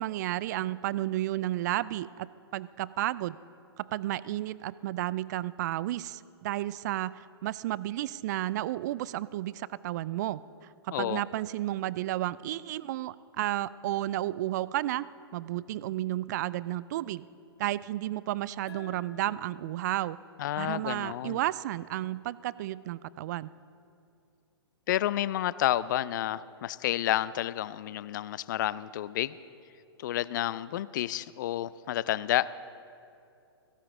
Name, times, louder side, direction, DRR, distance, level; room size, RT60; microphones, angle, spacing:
voice 1, 0.0-3.4 3.8-10.4 10.8-15.1 15.3-17.3 17.6-20.2 20.6-23.5, right 14 dB, 40° right, 19 dB, 0.4 m, -32 dB
voice 2, 10.9-11.2 20.4-21.4 24.9-29.4 30.0-32.5, left 13 dB, 45° left, 19 dB, 0.4 m, -30 dB
sound 1, 18.7-21.9, left 6 dB, 65° left, 1.2 m, -53 dB
17.5 x 15.5 x 3.7 m, 2.5 s
figure-of-eight pair, 115°, 14 cm